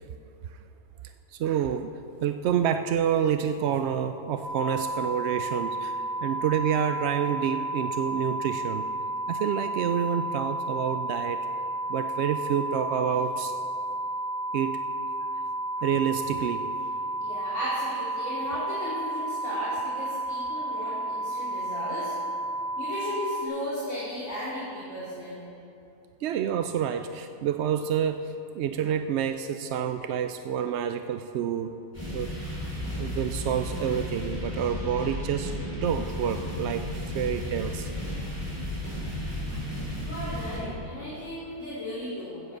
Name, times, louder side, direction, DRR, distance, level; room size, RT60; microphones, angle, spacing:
voice 1, 1.3-1.9 2.2-8.9 9.3-11.5 11.9-13.5 14.5-14.8 15.8-16.7 26.2-31.7 32.1-32.3 33.0-37.9 39.5-39.7, right 8 dB, 70° right, 8 dB, 0.6 m, -28 dB
sound 1, 4.4-23.4, right 1 dB, 15° left, 1.6 m, -32 dB
voice 2, 12.8-13.1 17.2-22.1 22.8-25.4 38.8-39.0 40.0-42.6, equal, 50° left, -10 dB, 3.0 m, -35 dB
sound 2, 31.9-40.6, left 1 dB, 10° right, 3.9 m, -33 dB
14.0 x 7.6 x 7.8 m, 2.7 s
omnidirectional pair, 1.6 m